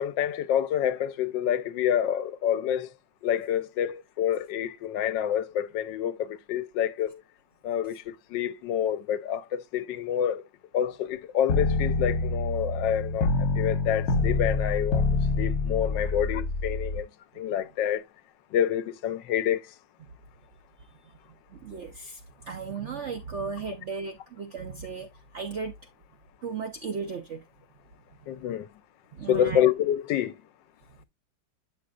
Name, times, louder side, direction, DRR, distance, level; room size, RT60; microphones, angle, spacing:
voice 1, 0.0-2.9 3.2-7.2 7.6-10.4 10.7-13.3 13.6-15.1 15.4-17.1 17.4-18.0 18.5-19.6 28.3-28.7 29.3-30.3, left 10 dB, 80° left, 1.3 m, -27 dB
sound 1, 11.5-17.0, left 3 dB, 60° left, 1.4 m, -26 dB
voice 2, 21.5-25.7 26.4-27.4 29.1-29.6, right 5 dB, 70° right, 0.7 m, -35 dB
8.5 x 6.5 x 2.3 m
omnidirectional pair, 2.0 m